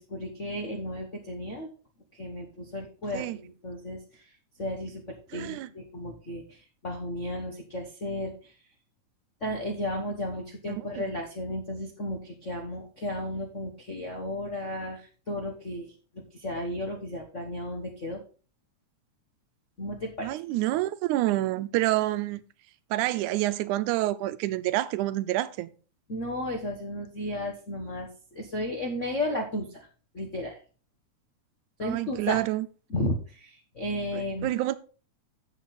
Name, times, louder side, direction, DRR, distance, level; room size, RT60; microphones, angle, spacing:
voice 1, 0.0-1.7 2.1-4.2 4.6-8.5 9.4-18.2 19.8-20.3 26.1-29.9 30.1-30.6 31.8-32.5 32.9-34.5, left 1 dB, 55° left, 0.8 m, -34 dB
voice 2, 5.3-5.7 11.0-11.1 20.2-22.4 22.9-25.7 31.8-32.7 34.1-34.8, right 16 dB, 85° right, 2.1 m, -28 dB
8.2 x 7.8 x 4.1 m
omnidirectional pair, 3.4 m